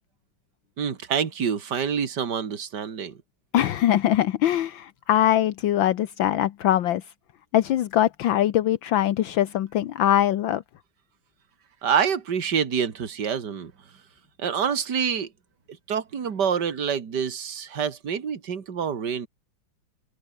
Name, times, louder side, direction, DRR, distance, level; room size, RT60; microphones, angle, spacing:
voice 1, 0.8-3.2 11.8-13.7 14.4-15.3 15.9-19.3, right 7 dB, 60° right, 2.6 m, -26 dB
voice 2, 3.5-7.0 7.5-10.6, left 12 dB, 75° left, 1.7 m, -22 dB
open air
omnidirectional pair, 2.2 m